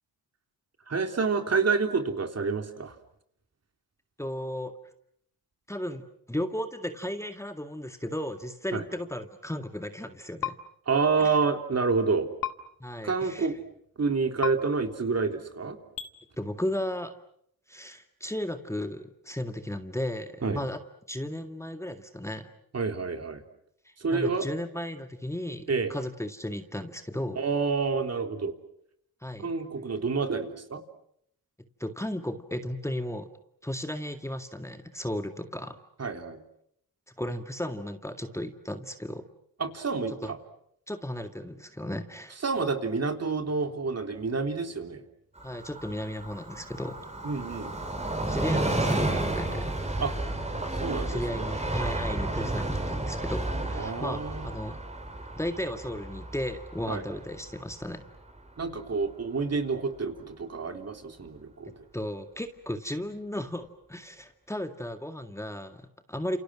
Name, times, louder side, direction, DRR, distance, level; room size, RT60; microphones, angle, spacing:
voice 1, 0.9-3.0 8.7-8.8 10.9-12.3 13.0-13.6 14.0-15.8 20.4-20.6 22.7-23.4 24.0-24.5 25.7-25.9 27.4-28.5 29.4-30.8 36.0-36.4 39.6-40.4 42.4-45.0 47.2-47.7 50.0-50.1 50.8-51.5 53.7-54.8 56.9-57.0 58.6-61.8, right 4 dB, 40° right, 6 dB, 3.5 m, -28 dB
voice 2, 4.2-4.7 5.7-10.6 11.2-11.4 12.8-13.5 16.4-17.1 17.7-20.8 21.1-22.5 23.9-27.4 29.2-29.5 31.8-33.3 33.6-35.8 37.2-39.3 40.2-40.3 40.9-42.4 45.4-47.0 48.3-49.7 51.1-54.8 55.3-58.1 61.9-66.4, left 1 dB, 5° left, 7 dB, 2.0 m, -35 dB
sound 1, 10.4-10.6 12.4-12.5 14.4-14.5 16.0-16.1, left 10 dB, 60° left, 2.2 m, -31 dB
Train, 45.4-58.7 59.0-59.1, right 2 dB, 15° right, 4.4 m, -32 dB
28.5 x 28.5 x 6.4 m, 0.71 s
supercardioid pair, 65°, 38 cm